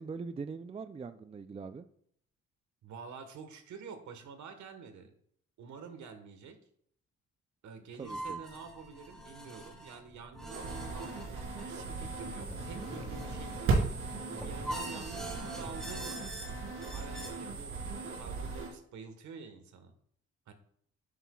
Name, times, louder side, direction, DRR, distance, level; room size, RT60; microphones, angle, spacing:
voice 1, 0.0-1.9 8.0-8.4, right 5 dB, 20° right, 11 dB, 0.4 m, -42 dB
voice 2, 2.8-5.1 5.6-6.6 7.6-13.9 14.4-16.2 16.9-19.9 20.5-20.6, right 5 dB, 70° right, 7 dB, 1.4 m, -48 dB
sound 1, 8.0-17.3, right 1 dB, ahead, 2.5 m, -44 dB
sound 2, 10.5-18.7, right 4 dB, 90° right, 3.3 m, -37 dB
10.0 x 8.1 x 2.4 m, 0.66 s
cardioid pair, 90°, 30 cm